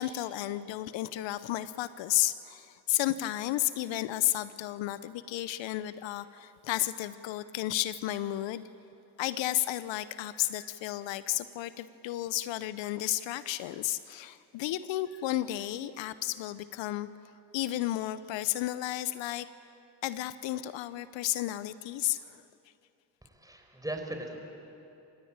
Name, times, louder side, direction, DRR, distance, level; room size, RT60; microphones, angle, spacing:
voice 1, 0.0-8.7 9.2-17.1 17.5-19.5 20.0-22.4, left 14 dB, 75° left, 15 dB, 0.8 m, -32 dB
voice 2, 23.2-24.4, right 1 dB, 10° right, 3 dB, 5.0 m, -38 dB
27.5 x 16.0 x 8.9 m, 2.7 s
supercardioid pair, 60°, 45 cm